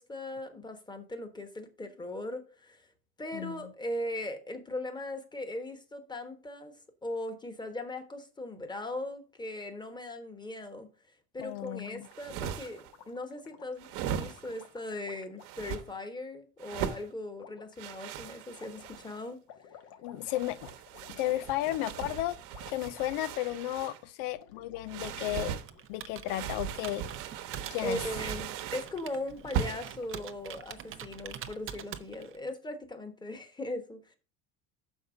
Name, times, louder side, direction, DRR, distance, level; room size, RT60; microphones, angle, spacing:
voice 1, 0.0-2.9 3.2-6.8 7.0-10.9 11.3-19.4 27.8-34.2, left 1 dB, 10° left, 1.1 m, -39 dB
voice 2, 3.3-3.7 11.4-12.1 20.0-20.7 21.2-22.4 22.7-25.5 25.9-27.0 27.7-28.0, left 15 dB, 85° left, 0.6 m, -33 dB
Gurgling, 11.4-16.0 16.7-16.8 17.4-17.7 18.5-23.5 23.7-23.9 24.2-25.4 25.6-25.8 26.2-26.7 27.0-30.4, left 8 dB, 65° left, 1.3 m, -54 dB
sound 1, 12.0-12.9 13.8-14.7 15.4-15.8 16.6-17.1 17.8-19.2 20.2-24.0 24.9-25.7 26.3-28.9 29.5-30.0, right 9 dB, 85° right, 1.1 m, -38 dB
Computer keyboard, 25.6-32.5, right 9 dB, 30° right, 0.5 m, -46 dB
6.4 x 5.4 x 5.0 m
cardioid pair, 130°, 43 cm